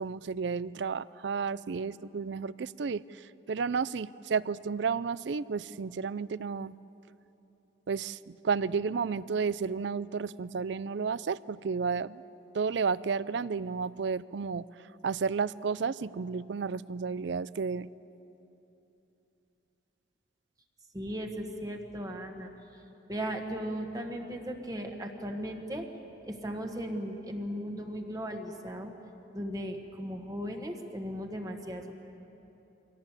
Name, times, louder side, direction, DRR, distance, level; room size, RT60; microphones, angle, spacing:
voice 1, 0.0-6.7 7.9-12.2 12.5-14.7 15.0-17.9, right 5 dB, 65° right, 18 dB, 0.4 m, -32 dB
voice 2, 20.9-22.5 23.1-25.9 26.2-28.9 29.3-32.0, equal, 20° right, 3 dB, 1.3 m, -37 dB
24.0 x 17.0 x 8.2 m, 3.0 s
head